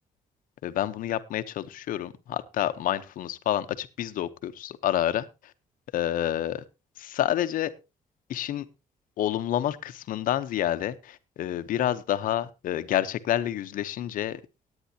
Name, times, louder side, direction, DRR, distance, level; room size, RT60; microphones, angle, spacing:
voice 1, 0.6-5.5 5.9-6.6 7.0-7.7 8.3-8.6 9.2-14.4, left 12 dB, 75° left, 12 dB, 0.9 m, -28 dB
19.0 x 9.1 x 2.8 m, 0.27 s
cardioid pair, 160°, 14 cm